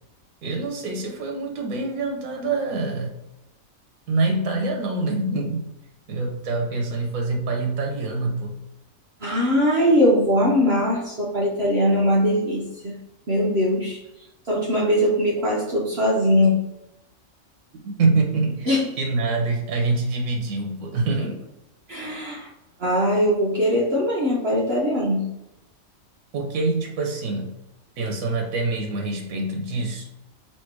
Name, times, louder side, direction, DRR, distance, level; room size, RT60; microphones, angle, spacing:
voice 1, 0.4-3.2 4.1-5.7 6.1-8.6 17.7-21.4 26.3-27.5 28.0-30.1, right 3 dB, 85° right, 2 dB, 1.2 m, -25 dB
voice 2, 9.2-12.9 13.3-14.0 14.5-16.6 18.7-18.8 21.9-22.5 22.8-25.3, equal, 55° right, -4 dB, 1.0 m, -21 dB
3.3 x 2.8 x 4.5 m, 0.90 s
omnidirectional pair, 1.4 m